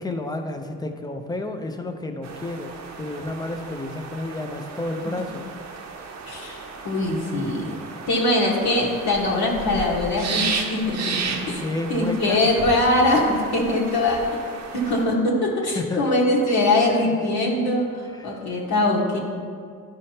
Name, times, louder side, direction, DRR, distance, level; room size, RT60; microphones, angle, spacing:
voice 1, 0.0-5.4 11.4-12.4 15.7-16.0 18.1-18.4, left 2 dB, 15° left, 5 dB, 0.6 m, -31 dB
sound 1, 2.2-15.0, right 5 dB, 60° right, 0.8 m, -34 dB
voice 2, 6.3-7.8 8.1-11.6 11.9-14.3 14.7-19.2, left 2 dB, 70° left, -4 dB, 1.5 m, -22 dB
11.0 x 5.0 x 2.9 m, 2.1 s
cardioid pair, 90°, 30 cm